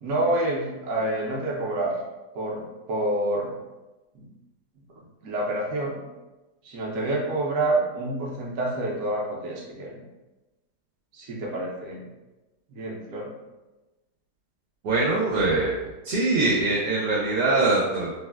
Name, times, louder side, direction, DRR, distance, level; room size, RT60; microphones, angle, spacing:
voice 1, 0.0-2.0 2.3-3.6 4.1-4.2 5.0-6.0 6.6-10.0 11.1-12.1 12.7-13.3, right 1 dB, 65° right, -2 dB, 1.0 m, -28 dB
voice 2, 14.8-15.7 16.0-18.1, right 2 dB, 90° right, -4 dB, 1.2 m, -23 dB
3.9 x 2.1 x 2.2 m, 1.1 s
omnidirectional pair, 1.7 m